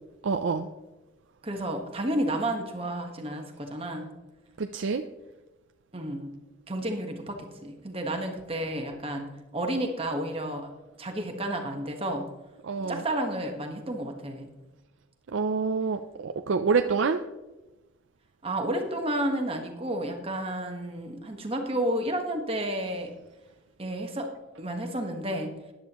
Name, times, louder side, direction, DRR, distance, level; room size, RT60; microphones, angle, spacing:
voice 1, 0.2-0.7 4.6-5.0 12.6-13.0 15.3-17.2, right 5 dB, 70° right, 6 dB, 0.5 m, -27 dB
voice 2, 1.4-4.1 5.9-6.3 6.7-10.7 11.0-12.2 12.8-14.5 18.4-23.1 23.8-24.3 24.6-25.5, right 1 dB, 30° right, 3 dB, 1.4 m, -31 dB
14.0 x 10.5 x 3.0 m, 1.1 s
head